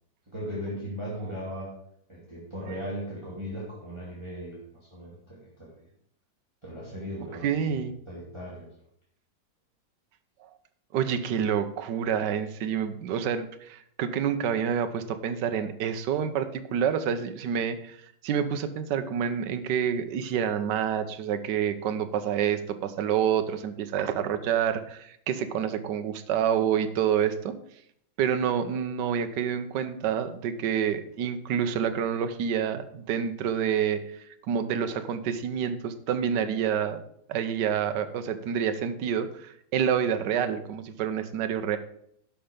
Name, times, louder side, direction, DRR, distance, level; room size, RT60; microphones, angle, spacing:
voice 1, 0.3-1.7 2.1-5.8 6.6-8.7, equal, 15° right, -6 dB, 2.6 m, -38 dB
voice 2, 7.4-7.9 10.9-18.0 18.2-27.5 28.2-34.0 34.5-37.0 37.3-41.8, right 8 dB, 70° right, 9 dB, 1.4 m, -28 dB
11.0 x 5.8 x 5.1 m, 0.70 s
omnidirectional pair, 2.1 m